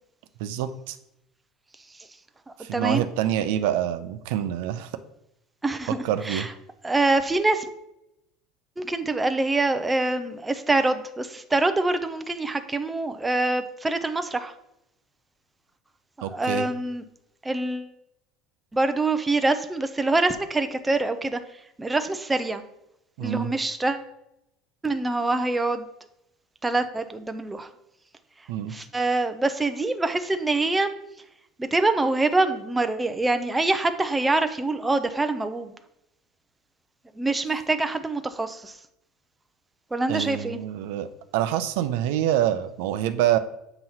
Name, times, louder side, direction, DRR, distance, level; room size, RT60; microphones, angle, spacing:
voice 1, 0.4-1.0 2.6-4.9 5.9-6.5 16.2-16.7 23.2-23.5 28.5-28.7 40.1-43.4, right 11 dB, 80° right, 11 dB, 0.5 m, -26 dB
voice 2, 2.7-3.0 5.6-6.0 6.3-6.5 6.8-7.7 8.8-14.5 16.2-17.0 17.4-17.9 18.7-21.4 21.8-22.6 23.2-24.0 24.8-25.9 26.6-27.7 28.7-30.9 31.6-35.7 37.2-38.7 39.9-40.6, right 2 dB, 10° right, 9 dB, 0.4 m, -25 dB
7.8 x 2.9 x 5.5 m, 0.82 s
cardioid pair, 145°, 0 cm